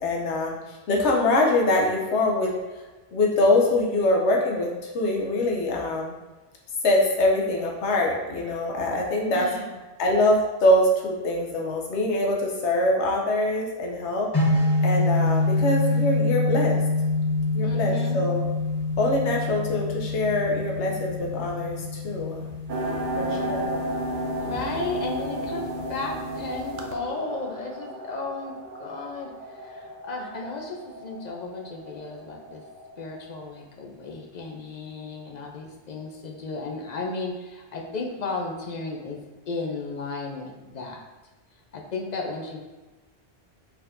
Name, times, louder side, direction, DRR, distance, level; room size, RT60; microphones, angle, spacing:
voice 1, 0.0-2.5 3.1-6.1 6.8-9.5 10.0-14.3 14.8-16.8 17.5-18.5 19.0-22.5 23.2-23.7, left 1 dB, 85° left, 0 dB, 1.0 m, -24 dB
voice 2, 9.3-9.7 17.6-18.2 24.3-32.6 33.0-41.0 41.7-42.6, left 3 dB, 50° left, 1 dB, 0.5 m, -34 dB
sound 1, 14.3-26.4, left 2 dB, 20° left, 1.4 m, -26 dB
sound 2, 22.7-33.4, right 1 dB, 60° right, 0.6 m, -33 dB
4.2 x 4.1 x 2.5 m, 1.2 s
omnidirectional pair, 1.1 m